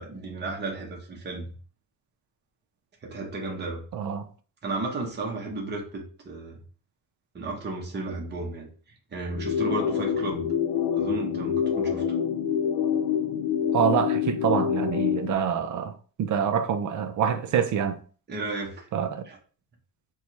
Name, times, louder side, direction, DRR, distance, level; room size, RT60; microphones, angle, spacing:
voice 1, 0.0-1.5 3.0-3.8 4.6-6.6 7.3-8.7 9.1-10.5 10.9-12.2 18.3-18.9 19.2-19.4, right 2 dB, 25° right, 0.8 m, -33 dB
voice 2, 3.9-4.2 13.7-15.9 16.2-18.0 18.9-19.2, right 8 dB, 50° right, 0.4 m, -26 dB
sound 1, 9.3-15.3, left 8 dB, 70° left, 0.6 m, -26 dB
4.1 x 2.3 x 3.0 m
cardioid pair, 135°, 39 cm